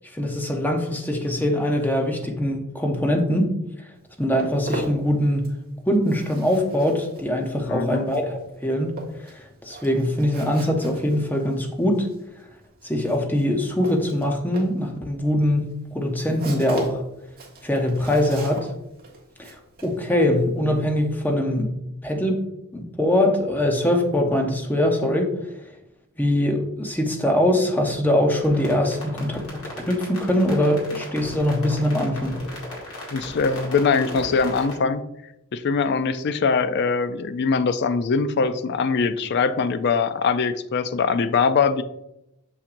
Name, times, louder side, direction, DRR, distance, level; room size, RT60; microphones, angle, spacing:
voice 1, 0.1-3.5 4.2-5.5 5.9-12.1 12.8-17.0 17.6-18.7 19.4-21.8 22.0-22.4 22.7-25.5 26.2-32.4, left 1 dB, 10° left, 2 dB, 0.8 m, -23 dB
Walk footsteps, 3.9-5.7 5.9-21.3, right 1 dB, 45° right, 1.4 m, -39 dB
voice 2, 7.7-8.1 33.1-35.0 35.5-41.8, left 5 dB, 50° left, 12 dB, 0.4 m, -22 dB
sound 1, 28.4-34.7, left 1 dB, 90° left, 2.3 m, -37 dB
6.5 x 5.8 x 2.6 m, 0.87 s
head